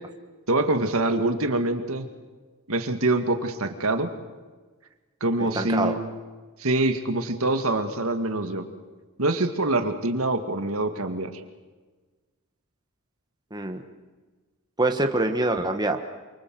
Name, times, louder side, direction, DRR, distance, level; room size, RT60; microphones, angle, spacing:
voice 1, 0.5-2.1 2.7-4.1 5.2-6.1 6.6-8.7 9.2-11.3, right 2 dB, 65° right, 7 dB, 2.1 m, -25 dB
voice 2, 5.4-6.0 13.5-13.8 14.8-16.0, right 2 dB, 20° right, 5 dB, 1.4 m, -25 dB
28.0 x 25.0 x 7.8 m, 1.3 s
head